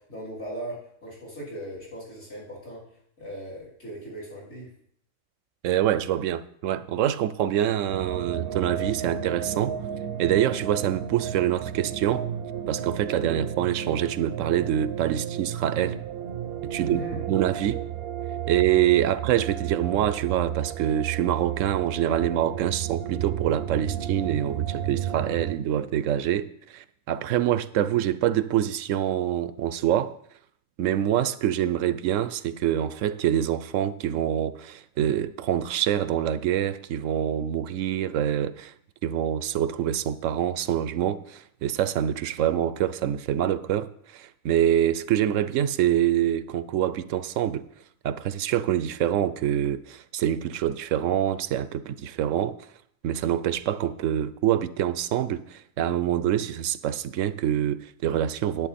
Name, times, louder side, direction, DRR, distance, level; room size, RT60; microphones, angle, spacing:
voice 1, 0.1-2.8 3.2-4.7 16.8-17.2, equal, 60° left, 4.0 m, -38 dB
voice 2, 5.6-9.8 10.2-12.3 12.7-16.0 16.6-17.0 17.3-17.8 18.5-30.2 30.8-38.7 39.0-47.7 48.0-52.6 53.0-58.7, right 11 dB, 80° right, 1.0 m, -25 dB
sound 1, 7.9-25.6, right 10 dB, 60° right, 0.7 m, -32 dB
10.5 x 8.9 x 4.2 m
omnidirectional pair, 1.3 m